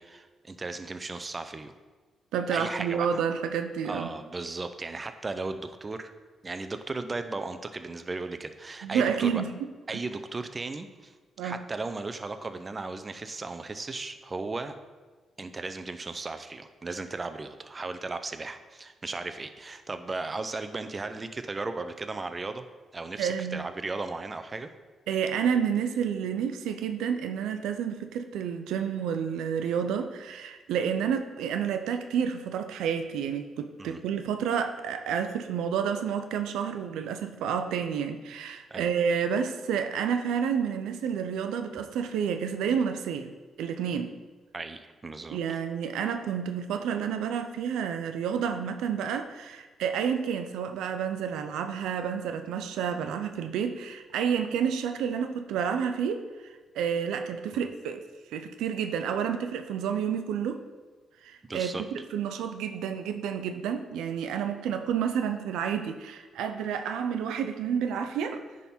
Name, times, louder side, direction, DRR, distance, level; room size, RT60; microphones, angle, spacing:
voice 1, 0.0-1.7 2.5-3.2 3.8-6.1 6.4-9.4 9.9-11.1 11.4-14.8 15.4-22.7 22.9-24.7 33.8-34.0 38.7-38.9 44.5-45.6 57.5-57.7 61.5-61.8, right 3 dB, 30° right, 9 dB, 0.6 m, -36 dB
voice 2, 2.3-4.1 8.8-9.5 9.9-10.0 11.4-11.6 23.2-23.6 25.1-44.1 45.3-58.0 58.3-60.6 61.2-68.4, right 7 dB, 85° right, 7 dB, 0.4 m, -30 dB
9.7 x 3.7 x 4.3 m, 1.3 s
cardioid pair, 70°, 0 cm